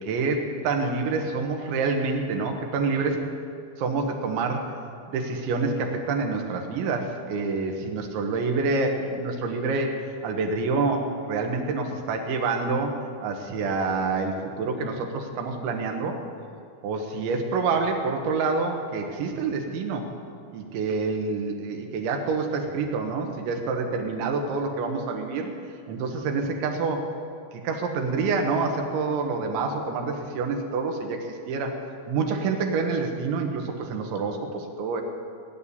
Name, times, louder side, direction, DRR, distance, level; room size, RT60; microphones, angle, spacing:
voice 1, 0.0-3.2 3.8-4.7 5.1-9.9 10.2-16.2 16.8-20.1 20.5-25.5 25.9-27.1 27.5-31.7 32.1-35.0, right 4 dB, 85° right, 3 dB, 3.7 m, -27 dB
18.0 x 7.1 x 9.8 m, 2.3 s
omnidirectional pair, 5.2 m